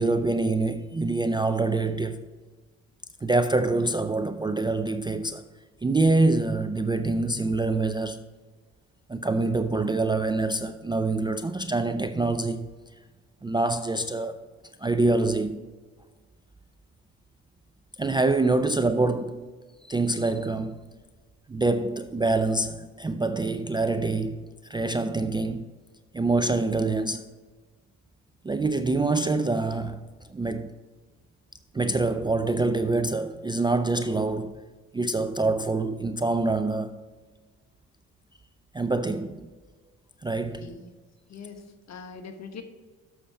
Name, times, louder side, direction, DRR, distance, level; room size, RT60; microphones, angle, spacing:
voice 1, 0.0-2.3 3.2-5.4 5.8-8.2 9.1-12.7 13.4-14.5 14.8-15.7 18.0-19.5 19.9-20.9 21.5-25.7 26.1-27.2 28.4-30.7 31.7-34.6 34.9-37.0 38.7-39.5 40.2-40.8, right 3 dB, 15° right, 0.4 m, -25 dB
voice 2, 40.6-40.9 41.3-41.6 41.9-42.6, left 5 dB, 50° left, 1.3 m, -42 dB
6.9 x 6.4 x 5.5 m
supercardioid pair, 65°, 35 cm